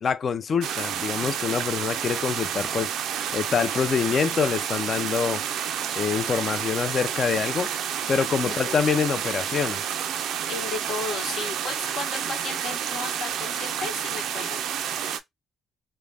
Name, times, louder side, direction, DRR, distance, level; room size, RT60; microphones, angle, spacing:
voice 1, 0.0-2.9 3.3-5.4 5.9-7.7 8.1-9.8, left 6 dB, 50° left, 0.4 m, -25 dB
sound 1, 0.6-15.2, right 9 dB, 80° right, 0.3 m, -30 dB
voice 2, 8.4-8.8 10.5-14.6, left 4 dB, 75° left, 1.1 m, -34 dB
2.4 x 2.1 x 3.3 m
cardioid pair, 90°, 0 cm